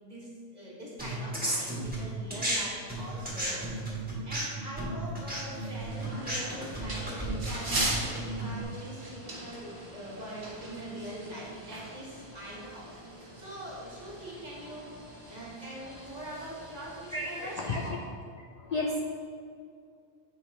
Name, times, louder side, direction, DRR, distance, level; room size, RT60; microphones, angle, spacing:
voice 1, 0.0-3.9 4.2-14.9 15.3-17.5, right 1 dB, 40° right, -6 dB, 1.7 m, -43 dB
sound 1, 1.0-2.6 2.9-8.6, right 1 dB, 10° right, 1.4 m, -34 dB
sound 2, 5.4-17.9, right 1 dB, 60° right, 1.7 m, -40 dB
voice 2, 17.1-18.0 18.6-19.2, left 2 dB, 50° left, -1 dB, 0.5 m, -32 dB
7.6 x 4.9 x 3.2 m, 2.4 s
omnidirectional pair, 1.1 m